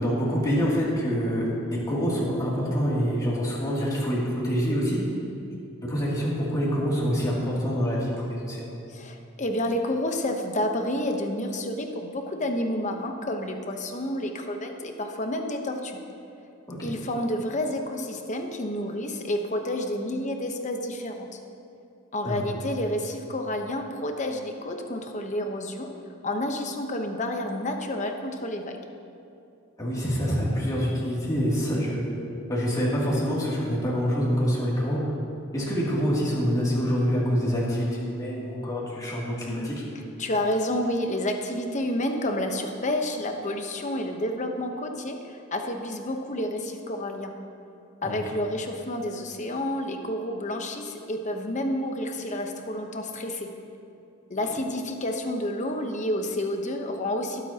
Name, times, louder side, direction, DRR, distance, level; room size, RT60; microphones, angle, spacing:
voice 1, 0.0-1.5 1.9-5.0 5.8-8.7 16.7-16.9 22.2-22.5 29.8-35.0 35.5-39.8 48.0-48.2 54.3-54.5, equal, 20° left, -7 dB, 2.7 m, -26 dB
voice 2, 8.9-16.0 16.8-21.4 22.1-25.9 26.2-28.8 40.2-47.3 48.0-53.5 54.3-57.5, left 1 dB, 35° left, 4 dB, 1.0 m, -29 dB
21.5 x 8.2 x 2.9 m, 2.7 s
head